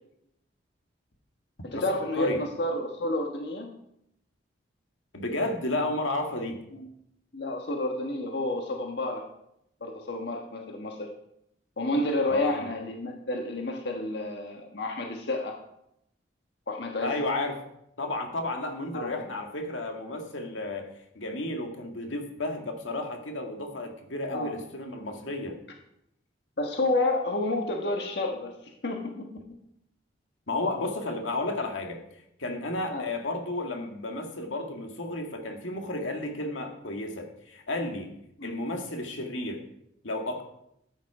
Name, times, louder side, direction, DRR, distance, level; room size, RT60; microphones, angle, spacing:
voice 1, 1.6-3.7 6.8-6.9 7.3-9.2 9.8-11.1 11.8-15.6 16.7-17.1 18.9-19.1 24.3-24.5 26.6-29.4 32.9-33.1 38.4-38.5, left 2 dB, 60° left, 2 dB, 1.5 m, -30 dB
voice 2, 5.1-6.6 12.3-12.7 17.0-17.6 18.0-25.6 30.5-32.0 32.4-38.1 38.4-39.6 40.0-40.4, left 2 dB, 85° left, 4 dB, 2.1 m, -32 dB
14.0 x 9.6 x 4.9 m, 0.77 s
head